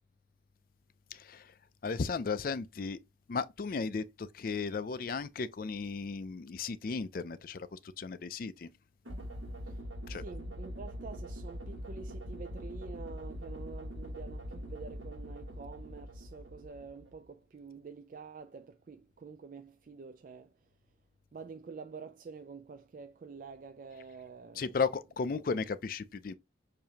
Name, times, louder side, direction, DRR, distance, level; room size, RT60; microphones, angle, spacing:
voice 1, 1.1-1.4 1.8-3.0 3.3-8.7 10.1-10.2 24.6-26.3, left 5 dB, 45° left, 0.4 m, -35 dB
sound 1, 9.0-17.2, equal, 85° right, 1.5 m, -43 dB
voice 2, 10.1-20.7 21.3-24.8, right 5 dB, 45° right, 0.3 m, -48 dB
6.7 x 2.7 x 2.9 m
head